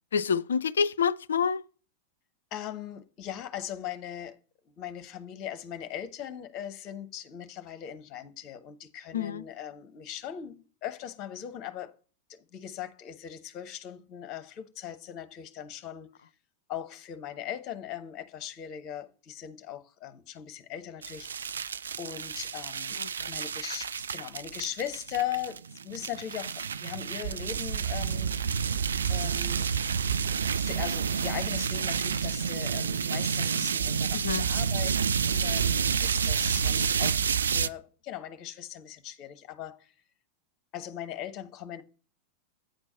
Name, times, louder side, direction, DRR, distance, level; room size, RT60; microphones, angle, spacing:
voice 1, 0.1-1.6 9.1-9.4 23.0-23.3 34.1-34.5, left 6 dB, 65° left, 0.3 m, -28 dB
voice 2, 2.5-4.4 4.7-11.9 12.3-16.1 16.7-21.4 22.0-23.0 23.3-28.4 29.1-29.7 30.5-34.9 35.2-39.9 40.7-41.8, left 10 dB, 35° left, 0.9 m, -39 dB
sound 1, 21.0-37.7, right 7 dB, 70° right, 0.3 m, -29 dB
9.1 x 4.5 x 5.5 m
figure-of-eight pair, 90°, 0 cm